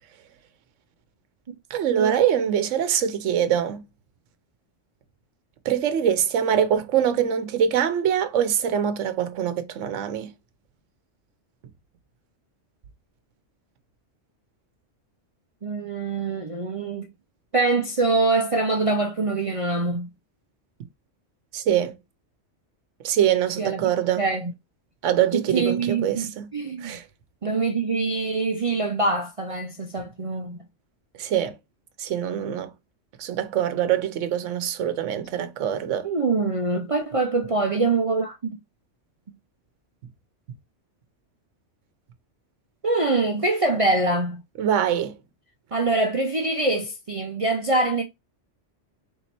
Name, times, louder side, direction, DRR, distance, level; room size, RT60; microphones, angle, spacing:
voice 1, 1.7-3.8 5.7-10.3 21.5-21.9 23.0-24.2 25.0-26.5 26.8-27.0 31.2-31.6 32.0-32.7 33.2-36.1 44.6-45.1, right 9 dB, 80° right, 1.0 m, -23 dB
voice 2, 15.6-17.1 17.5-20.1 23.6-23.8 24.2-24.5 25.3-27.0 27.4-30.6 36.0-38.6 42.8-44.4 45.7-48.0, right 3 dB, 45° right, 0.4 m, -24 dB
3.6 x 2.9 x 4.1 m
omnidirectional pair, 1.2 m